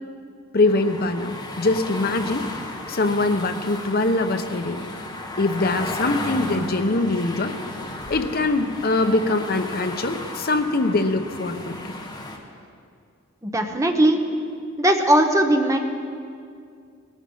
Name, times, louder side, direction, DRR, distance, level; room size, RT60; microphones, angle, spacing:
voice 1, 0.5-2.5 2.9-4.8 5.4-7.6 8.1-11.7, left 2 dB, 50° left, 7 dB, 0.8 m, -23 dB
sound 1, 0.6-12.4, left 1 dB, 20° left, 1.4 m, -34 dB
voice 2, 13.4-14.2 14.8-15.8, right 1 dB, 15° right, 4 dB, 1.1 m, -19 dB
18.5 x 12.5 x 5.5 m, 2.3 s
head